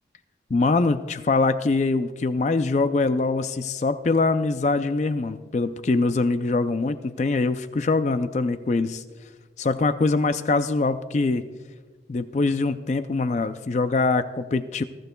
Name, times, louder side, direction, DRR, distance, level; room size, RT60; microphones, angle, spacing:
voice 1, 0.5-9.0 9.6-11.4 12.1-14.8, left 3 dB, 40° left, 11 dB, 0.4 m, -23 dB
21.5 x 13.0 x 2.2 m, 1.4 s
head